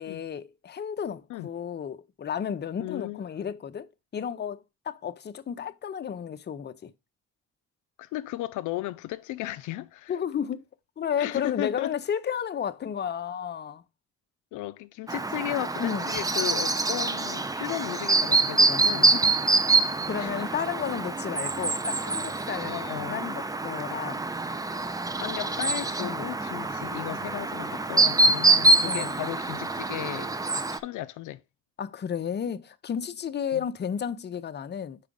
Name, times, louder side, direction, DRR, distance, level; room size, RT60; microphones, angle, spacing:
voice 1, 0.0-6.9 10.1-10.6 11.0-13.8 15.8-16.1 19.0-19.2 20.1-22.7 23.1-24.2 26.0-26.3 28.8-29.1 31.8-35.0, left 8 dB, 35° left, 0.6 m, -32 dB
voice 2, 2.8-3.5 8.0-10.1 11.2-11.9 14.5-19.2 20.2-20.3 22.6-23.2 25.2-31.4 33.5-33.7, left 15 dB, 80° left, 0.4 m, -35 dB
Chirp tweet, 15.1-30.8, right 3 dB, 10° right, 0.5 m, -25 dB
4.9 x 4.9 x 5.1 m
cardioid pair, 90°, 30 cm